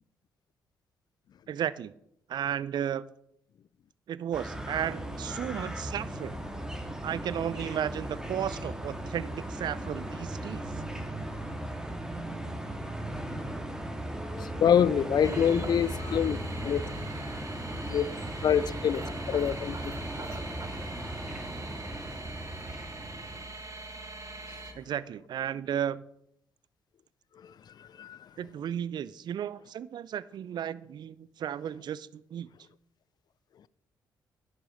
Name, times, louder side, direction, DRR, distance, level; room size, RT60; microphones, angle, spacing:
voice 1, 1.5-1.9 2.3-3.1 4.1-6.4 7.0-10.6 24.8-26.0 28.4-32.5, right 9 dB, 55° right, 0.5 m, -34 dB
sound 1, 4.3-23.5, right 1 dB, 5° right, 2.8 m, -37 dB
voice 2, 14.4-16.8 17.9-18.1 18.4-20.2 27.4-28.3, left 8 dB, 50° left, 0.5 m, -27 dB
sound 2, 15.2-24.7, right 2 dB, 35° right, 1.8 m, -42 dB
11.0 x 7.9 x 5.4 m
hypercardioid pair, 45°, 9 cm